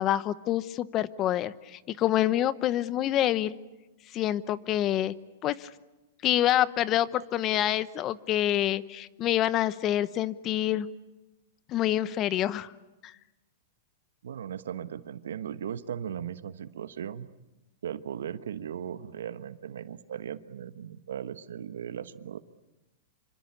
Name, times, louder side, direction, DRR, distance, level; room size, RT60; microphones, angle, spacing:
voice 1, 0.0-3.5 4.1-5.1 5.4-5.7 6.2-10.9 11.7-12.7, left 12 dB, 30° left, 17 dB, 0.9 m, -27 dB
voice 2, 14.2-17.3 17.8-22.4, right 9 dB, 85° right, 13 dB, 1.2 m, -37 dB
27.0 x 25.5 x 8.6 m, 1.1 s
hypercardioid pair, 135°, 0 cm